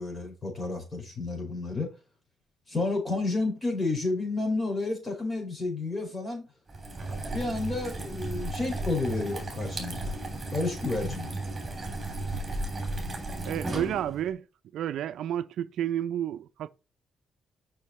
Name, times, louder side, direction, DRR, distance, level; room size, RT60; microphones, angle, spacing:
voice 1, 0.0-1.9 2.7-6.4 7.3-10.2 10.5-11.3, left 3 dB, 25° left, 4.9 m, -31 dB
sound 1, 6.7-14.3, right 2 dB, 25° right, 3.1 m, -34 dB
voice 2, 13.5-14.4 14.7-16.7, right 10 dB, 75° right, 0.4 m, -31 dB
6.6 x 6.0 x 4.2 m
cardioid pair, 90°, 0 cm